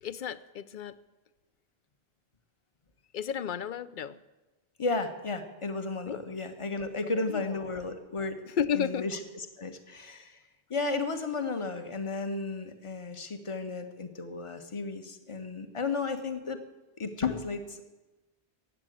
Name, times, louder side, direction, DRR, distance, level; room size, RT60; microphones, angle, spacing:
voice 1, 0.0-0.9 3.1-4.2 6.1-6.2 7.3-7.5 8.6-9.1, left 8 dB, 55° left, 14 dB, 0.7 m, -32 dB
voice 2, 4.8-8.4 8.7-10.4 10.7-16.6 17.0-17.8, left 3 dB, 30° left, 8 dB, 1.1 m, -33 dB
15.5 x 7.6 x 9.2 m, 1.1 s
omnidirectional pair, 1.1 m